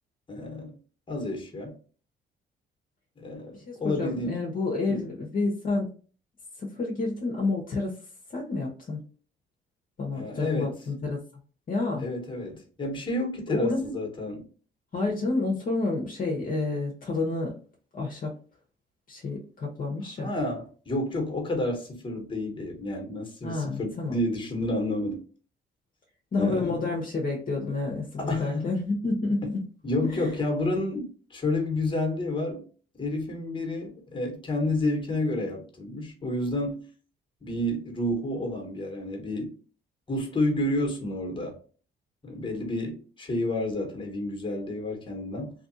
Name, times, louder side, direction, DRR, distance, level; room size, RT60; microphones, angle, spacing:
voice 1, 0.3-0.7 1.1-1.7 3.2-4.3 4.9-5.0 10.1-10.7 12.0-14.4 20.0-25.2 26.4-26.9 28.2-28.7 29.8-32.6 33.0-36.8 37.4-39.5 40.1-41.5 42.2-45.5, left 1 dB, 25° left, 1.2 m, -30 dB
voice 2, 3.5-5.9 6.6-7.9 8.3-9.0 10.0-11.2 11.7-12.1 13.5-14.0 14.9-17.6 17.9-18.3 19.1-20.3 23.4-24.2 26.3-29.4 30.1-30.3, left 3 dB, 45° left, 0.9 m, -29 dB
2.8 x 2.5 x 2.6 m
cardioid pair, 90°, 20 cm